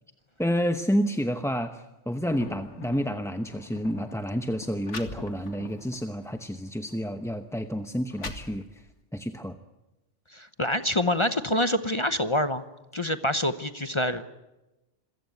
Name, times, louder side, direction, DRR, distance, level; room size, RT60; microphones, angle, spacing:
voice 1, 0.4-9.6, equal, 5° left, 7 dB, 0.8 m, -29 dB
Thunder, 2.1-8.0, left 5 dB, 70° left, 1.7 m, -47 dB
sound 1, 3.6-3.8 4.5-4.6 4.8-5.8 6.3-6.5 7.3-7.4 7.9-9.0, left 3 dB, 85° left, 2.3 m, -40 dB
voice 2, 10.3-12.6 12.9-14.2, left 1 dB, 30° left, 11 dB, 0.9 m, -26 dB
26.5 x 16.0 x 9.4 m, 1.0 s
omnidirectional pair, 1.2 m